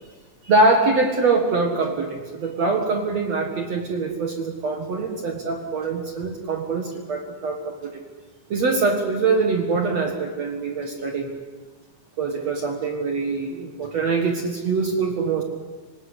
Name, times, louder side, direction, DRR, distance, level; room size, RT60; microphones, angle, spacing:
voice 1, 0.4-8.0 8.5-11.3 12.2-15.4, right 3 dB, 50° right, 4 dB, 2.2 m, -23 dB
25.5 x 17.5 x 9.9 m, 1.3 s
omnidirectional pair, 4.9 m